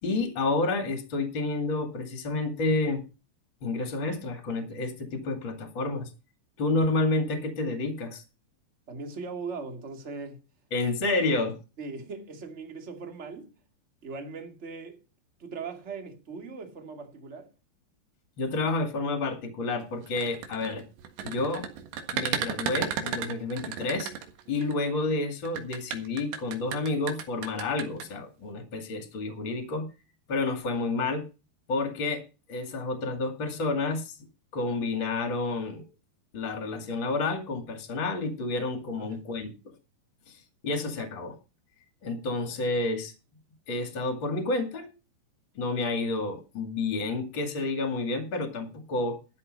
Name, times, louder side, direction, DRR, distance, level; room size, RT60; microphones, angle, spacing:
voice 1, 0.0-3.0 3.6-6.1 6.6-8.2 10.7-11.6 18.4-20.8 21.2-21.7 22.1-24.1 24.5-29.9 30.3-31.3 31.7-32.2 32.5-34.2 34.5-35.8 36.3-39.5 40.3-40.4 40.6-41.4 42.0-43.1 43.7-44.9 45.5-49.2, left 3 dB, 35° left, 2.2 m, -29 dB
voice 2, 8.9-10.4 11.8-13.5 14.0-15.0 15.4-17.5 22.0-22.1 38.9-39.2, right 4 dB, 25° right, 1.6 m, -39 dB
Shaking Tape Dispenser, 20.1-24.7 25.4-28.0, right 8 dB, 85° right, 3.9 m, -33 dB
13.0 x 8.4 x 5.3 m
omnidirectional pair, 4.9 m